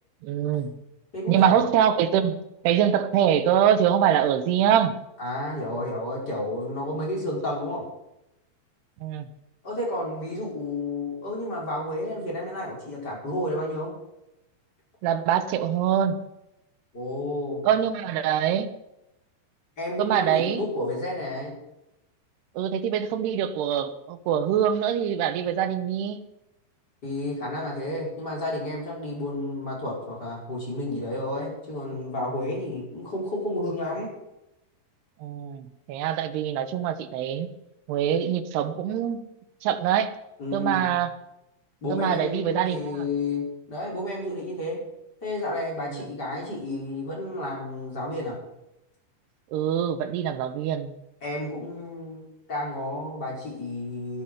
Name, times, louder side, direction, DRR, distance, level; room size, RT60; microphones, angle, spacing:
voice 1, 0.2-0.8 1.3-5.0 9.0-9.3 15.0-16.3 17.6-18.7 20.0-20.6 22.6-26.2 35.2-37.5 37.9-39.2 39.6-40.1 40.5-41.1 41.9-43.0 45.9-46.0 49.5-51.0, right 9 dB, 75° right, 10 dB, 2.8 m, -24 dB
voice 2, 1.1-1.6 5.2-7.8 9.6-13.9 16.9-17.6 19.8-21.5 27.0-34.1 40.4-40.9 41.8-44.8 45.2-48.4 51.2-52.2 52.5-54.2, left 1 dB, 20° left, -3 dB, 5.4 m, -31 dB
11.5 x 11.0 x 8.0 m, 0.89 s
omnidirectional pair, 5.3 m